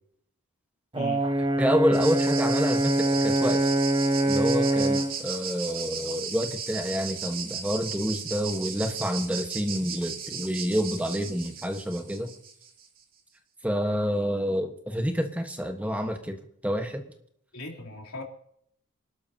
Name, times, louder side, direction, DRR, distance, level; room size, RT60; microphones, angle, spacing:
voice 1, 0.9-1.3 17.5-18.2, left 1 dB, 90° left, 0 dB, 3.8 m, -38 dB
Brass instrument, 0.9-5.2, right 1 dB, 25° right, 1.0 m, -24 dB
voice 2, 1.6-3.7 4.2-12.3 13.6-17.0, equal, 5° right, 5 dB, 1.3 m, -28 dB
sound 1, 1.9-12.9, right 7 dB, 45° right, 2.7 m, -36 dB
26.5 x 12.5 x 2.9 m, 0.69 s
head